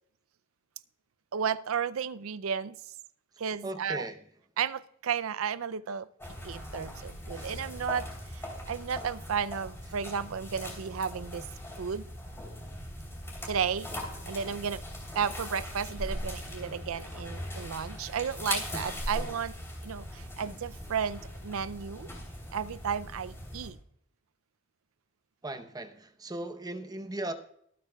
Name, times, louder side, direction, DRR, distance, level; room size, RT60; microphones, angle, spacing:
voice 1, 1.3-2.8 3.4-4.1 4.6-6.1 6.4-11.5 11.8-12.0 13.4-13.9 14.3-14.8 15.2-19.5 19.8-22.1 22.5-23.8, right 7 dB, 80° right, 0.5 m, -33 dB
voice 2, 3.6-4.3 7.3-7.6 25.4-27.3, right 1 dB, 20° right, 0.8 m, -38 dB
sound 1, 6.2-23.7, left 1 dB, 15° left, 3.2 m, -40 dB
24.5 x 9.2 x 2.3 m
head